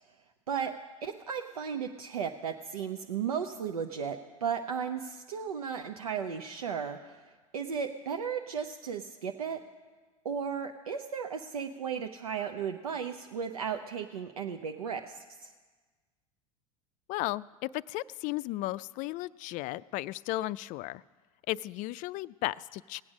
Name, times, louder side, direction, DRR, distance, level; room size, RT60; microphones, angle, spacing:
voice 1, 1.0-7.2 7.5-9.6 10.2-15.5, right 7 dB, 85° right, 4 dB, 0.7 m, -35 dB
voice 2, 17.1-21.0 21.5-23.0, left 17 dB, 45° left, 18 dB, 0.4 m, -35 dB
18.5 x 8.5 x 6.1 m, 1.4 s
hypercardioid pair, 80°, 18 cm